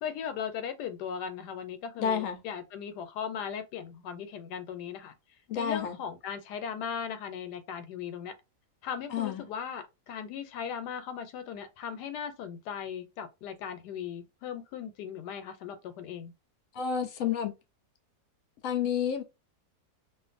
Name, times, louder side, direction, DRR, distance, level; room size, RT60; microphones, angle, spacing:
voice 1, 0.0-5.1 5.5-8.3 8.8-16.3, left 7 dB, 85° left, 1.2 m, -38 dB
voice 2, 2.0-2.4 5.5-6.0 9.1-9.4 16.7-17.5 18.6-19.2, left 8 dB, 70° left, 0.8 m, -30 dB
2.5 x 2.5 x 2.5 m
omnidirectional pair, 1.7 m